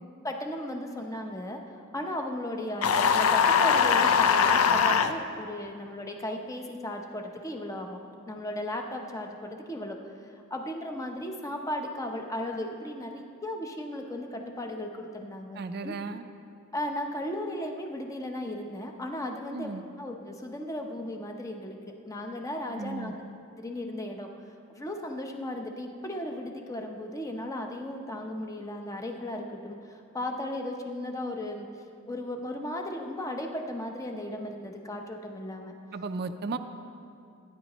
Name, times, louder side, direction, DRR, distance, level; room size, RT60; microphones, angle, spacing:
voice 1, 0.2-10.0 10.2-16.0 16.7-19.7 20.0-23.1 23.6-24.3 24.7-31.7 32.1-35.7, left 1 dB, 15° left, 3 dB, 0.7 m, -36 dB
sound 1, 2.8-5.1, left 6 dB, 80° left, 0.5 m, -21 dB
voice 2, 15.6-16.2 19.5-19.8 22.8-23.1 35.9-36.6, right 4 dB, 50° right, 9 dB, 0.4 m, -35 dB
16.5 x 9.5 x 3.0 m, 2.5 s
head